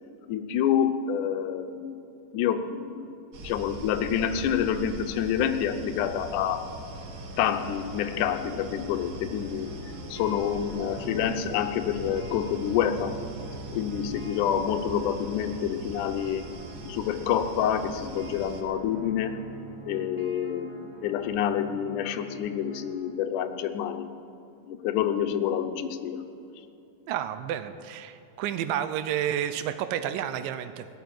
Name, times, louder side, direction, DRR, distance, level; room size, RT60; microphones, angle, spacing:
voice 1, 0.3-2.0 2.3-3.1 3.4-6.6 7.4-9.7 10.1-13.2 13.7-16.4 16.8-19.4 19.9-24.1 24.7-26.2, left 9 dB, 75° left, 7 dB, 2.0 m, -28 dB
sound 1, 3.3-18.6, right 2 dB, 65° right, 1.4 m, -42 dB
sound 2, 6.9-22.9, right 4 dB, 10° right, 1.3 m, -45 dB
voice 2, 27.1-30.9, right 10 dB, 80° right, 11 dB, 2.2 m, -30 dB
17.0 x 7.2 x 9.2 m, 2.8 s
omnidirectional pair, 4.1 m